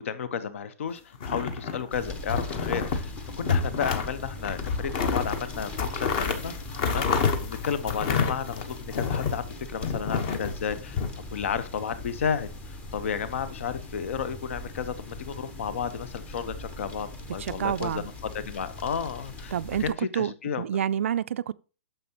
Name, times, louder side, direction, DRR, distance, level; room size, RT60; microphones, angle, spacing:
voice 1, 0.0-6.5 6.8-18.0 18.3-19.5 19.8-20.6, left 7 dB, 65° left, 0.9 m, -32 dB
sound 1, 1.1-1.9 2.3-3.1 3.4-4.1 4.4-9.4 9.8-11.1, left 5 dB, 35° left, 1.1 m, -28 dB
sound 2, 1.9-19.9, left 2 dB, 15° left, 0.8 m, -40 dB
voice 2, 17.4-18.1 19.5-21.5, right 9 dB, 65° right, 0.4 m, -28 dB
9.2 x 6.8 x 2.9 m
hypercardioid pair, 160°, 8 cm